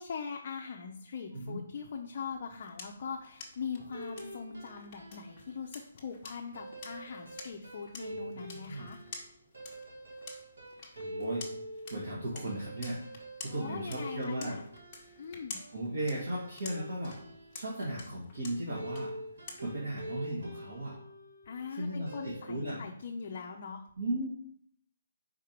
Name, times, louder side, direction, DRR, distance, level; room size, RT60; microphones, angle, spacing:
voice 1, 0.0-9.0 13.5-14.6 15.2-15.6 21.5-23.8, left 6 dB, 30° left, 1 dB, 0.5 m, -41 dB
sound 1, 2.2-20.0, left 4 dB, 15° left, 1.0 m, -50 dB
sound 2, 3.7-5.6 6.5-17.7 18.7-21.7 22.1-22.5, right 1 dB, 75° right, 1.8 m, -45 dB
voice 2, 8.1-8.9 11.0-11.5 11.9-13.0 13.4-14.6 15.7-17.2 17.5-19.1 19.6-21.0 21.7-22.8 24.0-24.3, right 1 dB, 55° right, -4 dB, 1.6 m, -36 dB
4.7 x 4.4 x 5.1 m, 0.63 s
hypercardioid pair, 180°, 0 cm